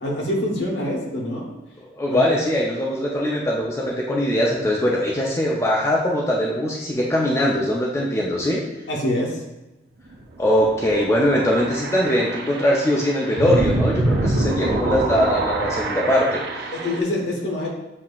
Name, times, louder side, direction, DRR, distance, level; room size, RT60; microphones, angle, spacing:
voice 1, 0.0-1.5 2.1-2.2 8.9-9.4 16.7-17.7, left 1 dB, 65° left, -2 dB, 1.1 m, -25 dB
voice 2, 1.9-8.6 10.4-16.7, equal, 15° left, -3 dB, 0.4 m, -21 dB
sound 1, 10.1-17.0, right 2 dB, 55° right, 0.6 m, -26 dB
7.3 x 2.8 x 2.4 m, 1.0 s
head